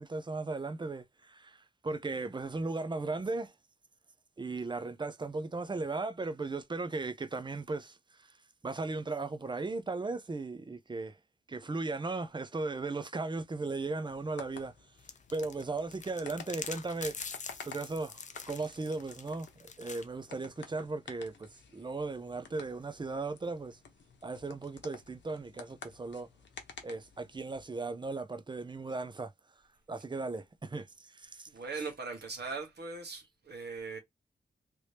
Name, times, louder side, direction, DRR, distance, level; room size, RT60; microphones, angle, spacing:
voice 1, 0.0-1.6 1.8-3.5 4.4-8.0 8.6-11.2 11.5-14.7 15.3-17.2 17.6-23.8 24.2-26.3 26.8-29.3 29.9-31.5, right 3 dB, 25° right, 0.5 m, -37 dB
sound 1, 14.1-27.6, left 5 dB, 75° left, 0.8 m, -52 dB
sound 2, 15.0-20.0, left 5 dB, 40° left, 0.5 m, -44 dB
voice 2, 31.5-34.0, right 4 dB, 65° right, 1.3 m, -40 dB
3.1 x 2.8 x 3.3 m
wide cardioid pair, 100°, 19 cm